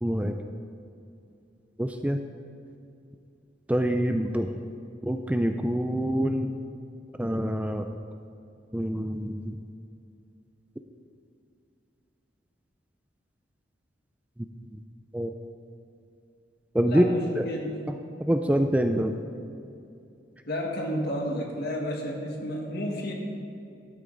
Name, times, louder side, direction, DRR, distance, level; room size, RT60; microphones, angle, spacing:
voice 1, 0.0-0.4 1.8-2.2 3.7-4.5 5.0-6.5 7.2-7.9 8.7-9.6 14.7-14.8 15.1-15.3 16.7-17.1 17.4-17.5 18.3-19.1, equal, 5° right, 6 dB, 0.4 m, -25 dB
voice 2, 16.9-17.9 20.5-23.1, equal, 55° left, 0 dB, 1.7 m, -31 dB
12.0 x 9.2 x 3.9 m, 2.6 s
head